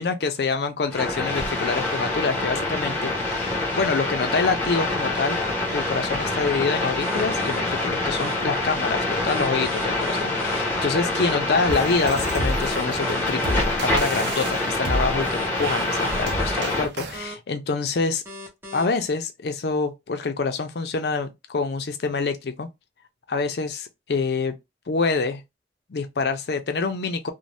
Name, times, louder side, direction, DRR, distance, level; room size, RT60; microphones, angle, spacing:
voice 1, 0.0-5.4 5.7-9.0 9.2-18.2 18.7-22.7 23.3-24.6 24.9-25.4 25.9-27.3, left 4 dB, 65° left, 0.5 m, -26 dB
sound 1, 0.9-16.9, left 2 dB, 10° left, 0.9 m, -26 dB
sound 2, 7.0-7.6 8.1-8.3 9.2-10.6 11.1-11.3 12.2-13.6 14.1-14.3 15.2-16.6 17.1-17.3 18.2-18.8, right 2 dB, 15° right, 0.9 m, -37 dB
sound 3, 11.7-17.2, right 1 dB, 80° right, 0.6 m, -30 dB
2.6 x 2.1 x 3.2 m
head